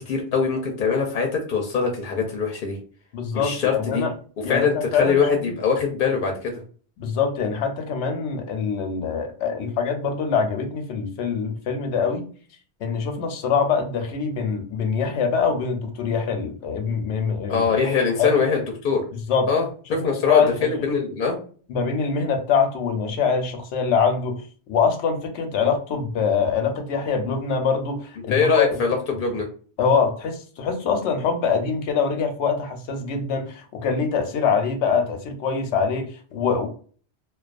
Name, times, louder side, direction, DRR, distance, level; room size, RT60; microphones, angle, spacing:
voice 1, 0.0-2.8 3.3-4.0 4.5-6.6 17.5-19.0 19.5-19.6 19.9-21.3 25.6-25.7 28.3-29.4, left 5 dB, 60° left, 0.6 m, -22 dB
voice 2, 3.1-4.1 4.4-5.2 7.0-12.3 12.8-17.7 18.2-18.3 19.3-19.5 19.9-20.9 21.7-24.4 24.7-28.8 29.8-36.7, left 5 dB, 85° left, 0.9 m, -24 dB
2.3 x 2.3 x 2.4 m
omnidirectional pair, 1.1 m